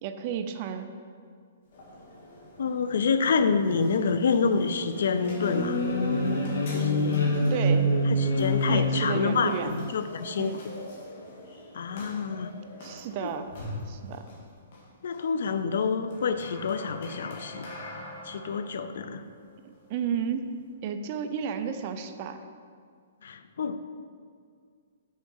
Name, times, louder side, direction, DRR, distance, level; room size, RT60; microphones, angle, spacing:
voice 1, 0.0-0.9 7.5-7.9 8.7-9.8 10.4-10.6 12.8-13.5 13.9-14.2 19.6-20.5 20.8-22.4, right 7 dB, 35° right, 8 dB, 0.4 m, -32 dB
sound 1, 1.6-20.7, left 1 dB, 50° left, 1.9 m, -45 dB
voice 2, 2.6-5.8 6.7-7.3 8.0-10.6 11.7-12.6 13.2-13.3 15.0-17.7 18.2-19.2 23.2-23.8, left 5 dB, 70° left, 11 dB, 0.4 m, -28 dB
sound 2, 4.6-9.6, left 1 dB, 85° left, 1.4 m, -26 dB
6.3 x 4.7 x 5.5 m, 2.1 s
hypercardioid pair, 160°, 0 cm